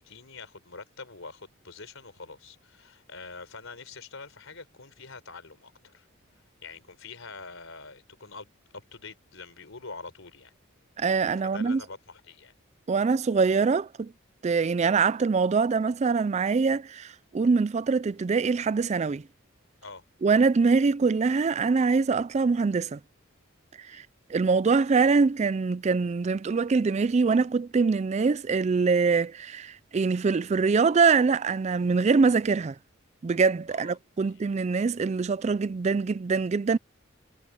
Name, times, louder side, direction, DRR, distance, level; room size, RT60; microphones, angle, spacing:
voice 1, 0.0-6.1 6.6-10.5 11.4-12.5 19.8-20.0 23.9-24.0 33.7-34.4, left 4 dB, 75° left, 4.2 m, -45 dB
voice 2, 11.0-11.8 12.9-14.1 14.4-19.3 20.2-23.0 23.8-32.8 33.2-36.8, right 4 dB, 35° right, 0.4 m, -24 dB
head